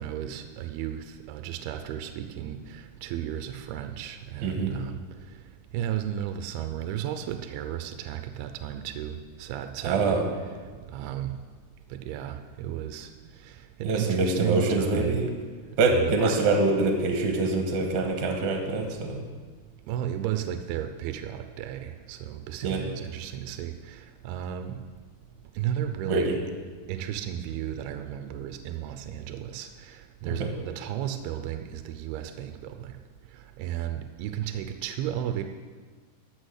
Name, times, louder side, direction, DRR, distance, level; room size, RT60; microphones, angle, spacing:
voice 1, 0.0-5.0 5.7-10.2 10.9-11.4 11.9-13.1 13.4-15.2 15.9-16.4 19.9-24.8 25.6-26.3 26.9-32.9 33.6-35.4, right 10 dB, 85° right, 7 dB, 2.5 m, -34 dB
voice 2, 4.4-4.7 9.8-10.2 13.8-15.3 15.8-19.2 22.6-22.8 26.1-26.4 30.3-30.5, right 3 dB, 60° right, 3 dB, 2.2 m, -25 dB
13.0 x 6.0 x 6.5 m, 1.5 s
omnidirectional pair, 4.6 m